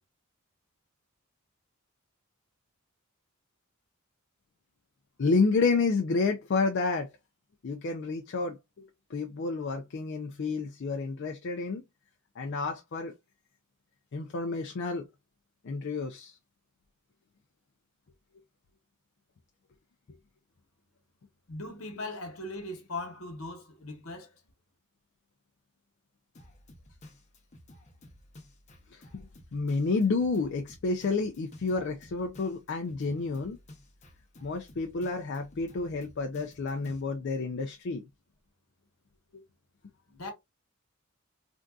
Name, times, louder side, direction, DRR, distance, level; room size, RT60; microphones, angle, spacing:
voice 1, 5.2-7.1 7.6-8.9 9.1-11.8 12.4-13.1 14.1-15.0 15.6-16.3 28.9-29.2 29.5-33.6 34.4-38.0 39.3-39.4, left 4 dB, 55° left, 0.4 m, -30 dB
voice 2, 21.5-24.3 40.1-40.3, left 2 dB, 70° left, 1.1 m, -39 dB
Drum kit, 26.3-37.0, left 1 dB, 30° left, 0.8 m, -53 dB
3.5 x 2.6 x 2.3 m
head